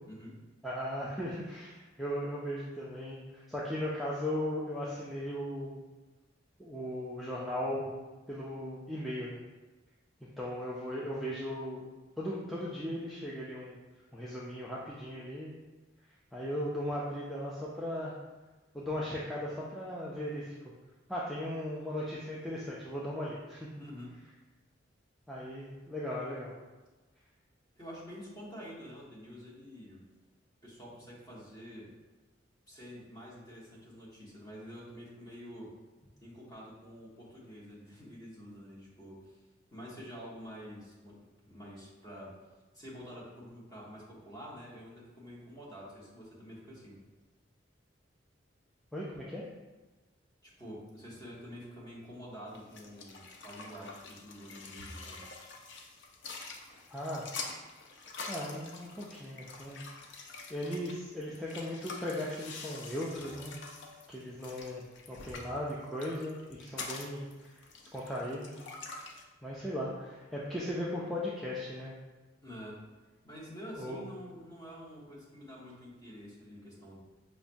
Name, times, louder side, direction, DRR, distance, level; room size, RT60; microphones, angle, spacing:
voice 1, 0.0-0.4 23.8-24.2 27.8-30.0 30.6-31.9 32.7-35.7 36.2-39.4 39.7-42.4 42.7-47.0 50.4-55.2 72.4-72.8 73.2-77.0, equal, 20° left, -6 dB, 1.0 m, -48 dB
voice 2, 0.6-5.8 6.6-9.4 10.4-11.8 12.2-13.8 14.1-15.6 16.3-18.2 18.7-20.5 21.1-23.7 25.3-26.5 48.9-49.4 56.9-57.3 58.3-60.0 60.5-63.5 64.1-67.5 67.9-68.5 68.9-69.1 69.4-71.9 73.7-74.1, left 1 dB, ahead, -7 dB, 0.4 m, -37 dB
sound 1, 52.5-69.2, left 4 dB, 65° left, 0.4 m, -46 dB
5.6 x 2.1 x 2.5 m, 1.2 s
head